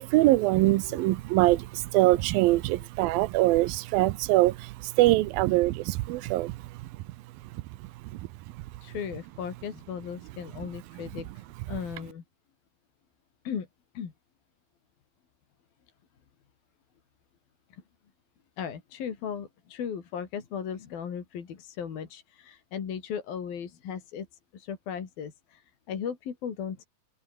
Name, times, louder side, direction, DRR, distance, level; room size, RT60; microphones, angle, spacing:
voice 1, 0.0-6.6 8.0-8.2, right 18 dB, 80° right, 2.6 m, -23 dB
voice 2, 8.8-12.2 13.4-13.7 13.9-14.1 17.7-17.8 18.6-26.9, left 7 dB, 70° left, 4.9 m, -37 dB
open air
omnidirectional pair, 4.3 m